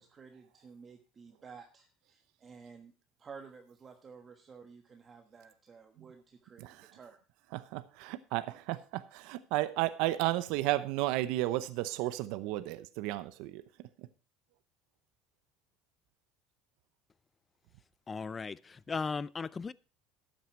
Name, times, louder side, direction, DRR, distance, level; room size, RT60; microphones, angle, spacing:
voice 1, 0.0-2.9 3.2-7.2, right 5 dB, 25° right, 1.3 m, -53 dB
voice 2, 6.6-6.9 7.5-13.6 14.0-14.1, right 16 dB, 70° right, 0.8 m, -33 dB
voice 3, 18.1-19.7, left 4 dB, 20° left, 0.4 m, -37 dB
12.5 x 9.1 x 4.5 m
cardioid pair, 145°, 0 cm